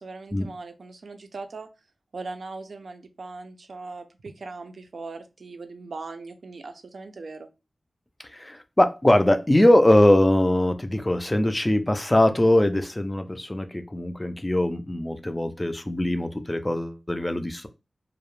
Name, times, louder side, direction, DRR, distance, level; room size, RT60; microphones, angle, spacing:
voice 1, 0.0-1.7 2.1-7.5, right 3 dB, 75° right, 0.4 m, -39 dB
voice 2, 8.3-17.7, left 1 dB, 20° left, 0.3 m, -21 dB
2.3 x 2.0 x 3.0 m
wide cardioid pair, 70°, 0 cm